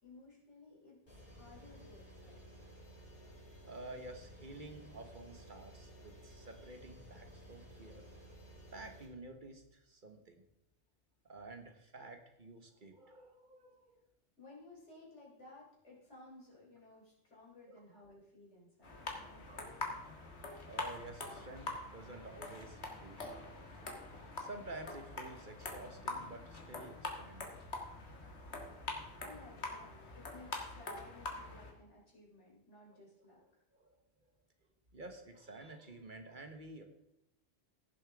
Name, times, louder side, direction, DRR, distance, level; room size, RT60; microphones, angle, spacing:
voice 1, 0.0-2.4 14.4-19.0 19.2-19.7 29.2-33.6, left 2 dB, 90° left, -3 dB, 3.8 m, -57 dB
sound 1, 1.1-9.1, equal, 50° left, 5.0 m, -55 dB
voice 2, 3.6-8.0 8.7-10.4 11.2-13.9 17.7-17.8 19.4-19.8 20.6-27.6 32.9-33.0 33.7-34.0 34.9-36.8, right 2 dB, 45° right, 6 dB, 1.2 m, -51 dB
sound 2, 18.8-31.7, left 3 dB, 70° left, 1.8 m, -45 dB
16.5 x 7.2 x 3.5 m, 0.79 s
omnidirectional pair, 1.2 m